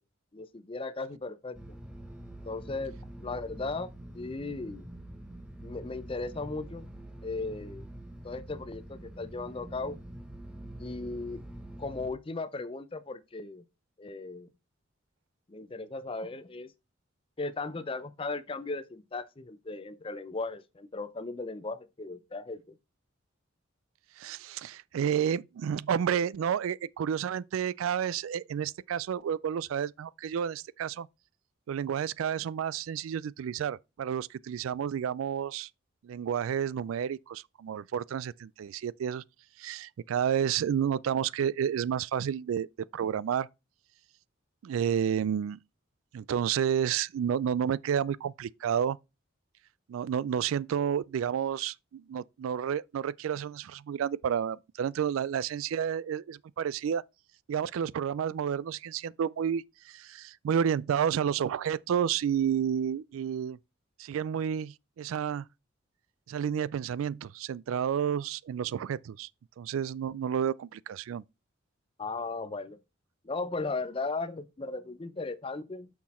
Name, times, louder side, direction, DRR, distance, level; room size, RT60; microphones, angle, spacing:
voice 1, 0.3-1.8 2.4-4.9 5.6-6.9 7.2-7.9 8.2-10.0 10.8-11.4 11.8-13.6 14.0-14.5 15.5-16.7 17.4-22.8 72.0-72.8 73.2-75.9, left 3 dB, 25° left, 0.5 m, -37 dB
sound 1, 1.5-12.1, right 1 dB, 5° right, 0.9 m, -45 dB
voice 2, 24.2-31.1 31.7-35.7 36.0-39.2 39.6-42.7 42.9-43.5 44.6-45.6 46.1-49.0 49.9-57.0 57.5-63.6 64.0-65.4 66.3-69.3 69.6-71.2, right 8 dB, 85° right, 0.3 m, -30 dB
6.2 x 5.9 x 4.2 m
head